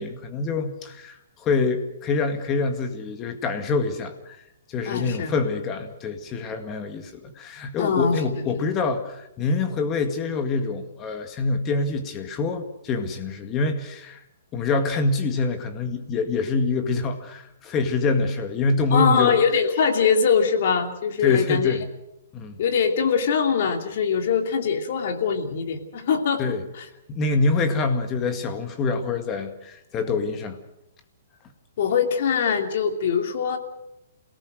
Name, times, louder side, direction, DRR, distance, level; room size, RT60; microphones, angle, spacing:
voice 1, 0.0-4.4 4.7-14.2 14.5-19.4 21.2-21.9 22.3-22.6 26.4-26.6 27.1-30.6, left 3 dB, 20° left, 7 dB, 2.0 m, -25 dB
voice 2, 4.9-5.3 7.8-8.5 18.9-21.7 22.6-26.4 26.8-26.9 31.8-33.6, left 6 dB, 50° left, 5 dB, 2.9 m, -22 dB
27.5 x 18.0 x 6.4 m, 0.84 s
hypercardioid pair, 165°, 0 cm